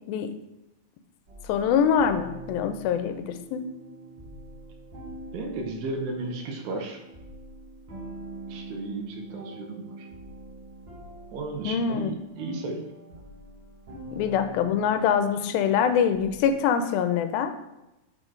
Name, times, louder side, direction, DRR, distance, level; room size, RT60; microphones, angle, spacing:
sound 1, 1.3-16.5, right 1 dB, 45° right, 1.8 m, -44 dB
voice 1, 1.5-3.7 11.6-12.1 14.1-17.5, left 7 dB, 90° left, 9 dB, 2.4 m, -24 dB
voice 2, 5.3-7.0 8.5-10.1 11.3-13.1, right 2 dB, 70° right, 2 dB, 2.0 m, -34 dB
6.1 x 4.5 x 4.4 m, 0.97 s
omnidirectional pair, 4.1 m